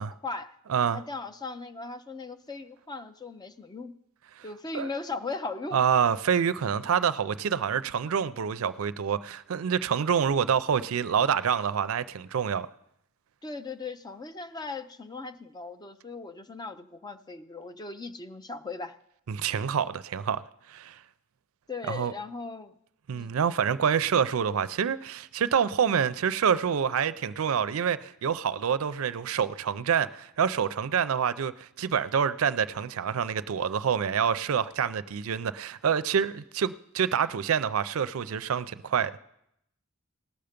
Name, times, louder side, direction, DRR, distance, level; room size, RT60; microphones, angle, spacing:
voice 1, 0.0-0.5 0.9-3.9 4.4-5.8 13.4-18.9 21.7-22.7 23.1-23.4, left 3 dB, 20° left, 0.5 m, -38 dB
voice 2, 0.7-1.0 4.4-4.5 4.7-4.9 5.7-12.7 19.3-20.4 20.7-21.0 21.9-22.1 23.1-39.1, right 7 dB, 70° right, 0.4 m, -27 dB
18.5 x 6.8 x 5.1 m
head